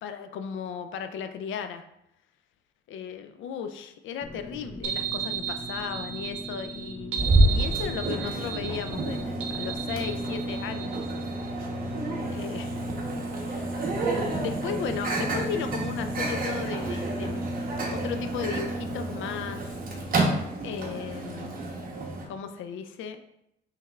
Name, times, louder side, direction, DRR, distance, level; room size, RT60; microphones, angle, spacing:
voice 1, 0.0-1.8 2.9-11.0 12.3-13.2 14.4-17.5 17.9-19.7 20.6-21.8 22.3-23.2, left 7 dB, 75° left, 8 dB, 0.5 m, -36 dB
sound 1, 4.2-10.6, equal, 15° left, 0.6 m, -41 dB
sound 2, 4.8-11.5, right 9 dB, 80° right, 0.8 m, -35 dB
Microwave oven, 7.2-22.3, right 2 dB, 45° right, 1.0 m, -29 dB
5.4 x 3.3 x 2.4 m, 0.81 s
cardioid pair, 90°, 20 cm